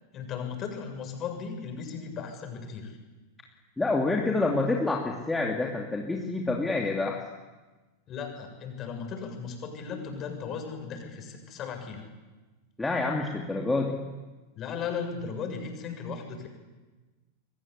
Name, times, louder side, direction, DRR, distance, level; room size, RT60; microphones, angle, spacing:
voice 1, 0.1-3.0 8.1-12.1 14.6-16.5, left 6 dB, 30° left, 4 dB, 7.4 m, -36 dB
voice 2, 3.8-7.2 12.8-14.0, left 3 dB, 10° left, -1 dB, 3.0 m, -27 dB
28.5 x 23.5 x 8.4 m, 1.2 s
figure-of-eight pair, 90°, 0 cm